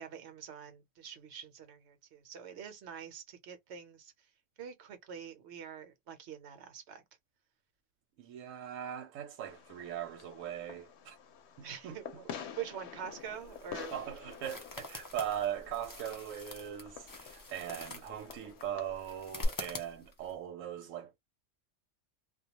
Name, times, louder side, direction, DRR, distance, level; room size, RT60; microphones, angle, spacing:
voice 1, 0.0-4.1 4.6-7.0 11.6-13.9, right 8 dB, 65° right, 0.9 m, -45 dB
voice 2, 8.2-11.2 11.6-12.0 13.9-21.2, right 10 dB, 85° right, 1.0 m, -40 dB
Fireworks, 9.5-19.5, left 3 dB, 65° left, 0.9 m, -46 dB
sound 1, 13.1-20.3, left 2 dB, 35° left, 0.3 m, -48 dB
2.3 x 2.2 x 2.8 m
omnidirectional pair, 1.3 m